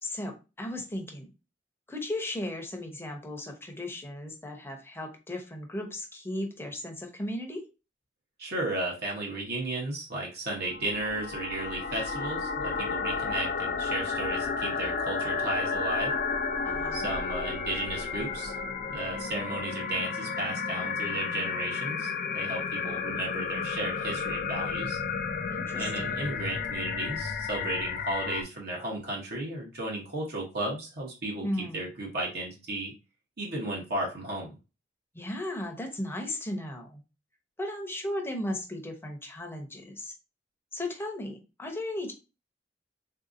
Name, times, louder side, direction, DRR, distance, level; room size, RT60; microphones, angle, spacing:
voice 1, 0.0-1.3 1.9-7.6 16.6-17.1 25.5-26.2 31.4-31.8 35.1-37.0 37.6-40.1 40.7-42.1, left 1 dB, 15° left, 2 dB, 0.7 m, -36 dB
voice 2, 8.4-16.1 16.9-18.6 18.9-25.0 25.8-32.9 33.4-34.5, right 2 dB, 60° right, -3 dB, 0.9 m, -34 dB
sound 1, 10.6-28.4, left 5 dB, 50° left, 0.4 m, -32 dB
3.6 x 2.7 x 2.5 m, 0.29 s
head